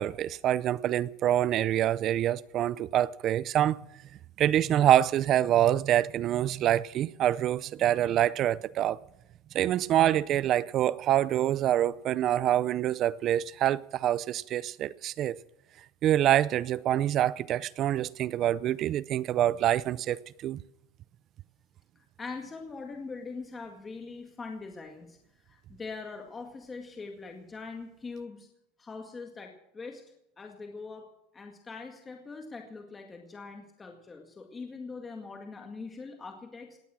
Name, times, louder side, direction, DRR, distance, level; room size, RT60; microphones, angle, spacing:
voice 1, 0.0-3.8 4.4-9.0 9.5-15.4 16.0-20.6, right 12 dB, 40° right, 0.5 m, -26 dB
voice 2, 22.0-25.2 25.5-28.5 28.8-30.0 30.4-36.8, left 4 dB, 15° left, 2.0 m, -42 dB
18.0 x 12.5 x 6.2 m
supercardioid pair, 135°, 0 cm